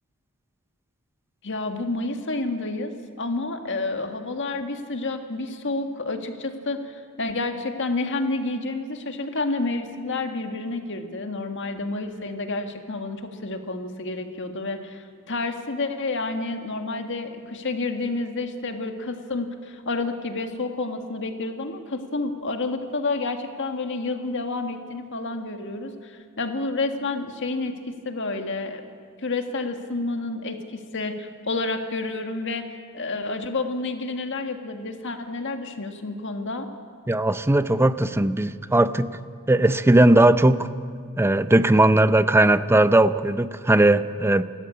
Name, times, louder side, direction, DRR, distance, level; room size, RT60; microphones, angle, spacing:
voice 1, 1.4-2.9 3.2-28.9 29.2-32.6 32.9-36.7, left 3 dB, 60° left, 6 dB, 1.7 m, -29 dB
voice 2, 37.1-39.2 39.5-40.7 41.2-44.4, right 1 dB, 10° right, 13 dB, 0.6 m, -18 dB
28.5 x 13.5 x 8.5 m, 2.2 s
head